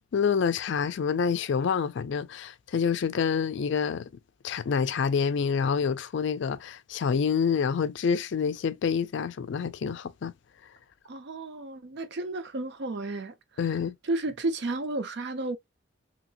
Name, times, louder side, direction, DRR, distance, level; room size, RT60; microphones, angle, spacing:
voice 1, 0.1-4.1 4.4-10.3 13.6-14.0, left 6 dB, 60° left, 0.4 m, -27 dB
voice 2, 11.1-13.3 14.1-15.6, right 2 dB, 60° right, 0.6 m, -32 dB
2.8 x 2.5 x 2.7 m
head